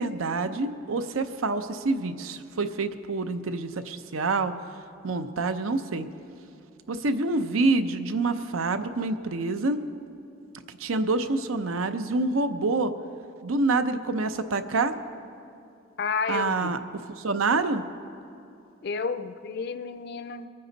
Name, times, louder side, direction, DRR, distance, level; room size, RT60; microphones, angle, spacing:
voice 1, 0.0-4.5 5.0-6.1 6.9-9.9 10.7-12.9 13.4-15.0 16.3-17.8, right 3 dB, 85° right, 10 dB, 0.7 m, -27 dB
voice 2, 16.0-16.7 18.8-20.5, left 5 dB, 50° left, 10 dB, 0.4 m, -31 dB
23.0 x 9.5 x 4.0 m, 2.7 s
head